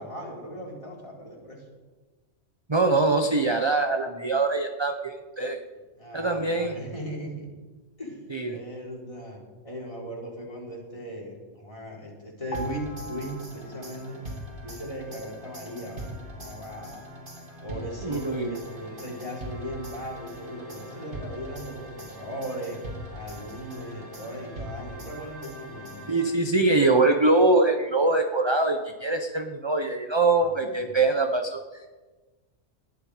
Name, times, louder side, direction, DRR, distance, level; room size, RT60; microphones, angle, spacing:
voice 1, 0.0-1.6 6.0-7.5 8.0-8.2 8.5-9.4 9.6-14.2 14.6-17.1 17.6-22.8 23.1-26.1 30.4-30.9, equal, 25° left, -2 dB, 4.4 m, -38 dB
voice 2, 2.7-5.6 6.1-6.7 8.3-8.6 18.0-18.5 26.1-31.9, right 3 dB, 25° right, 5 dB, 0.9 m, -23 dB
sound 1, 12.5-14.1 14.4-14.6, equal, 65° left, 1.9 m, -40 dB
sound 2, 12.5-26.7, equal, 45° right, 2.7 m, -41 dB
20.0 x 12.5 x 5.0 m, 1.3 s
omnidirectional pair, 1.3 m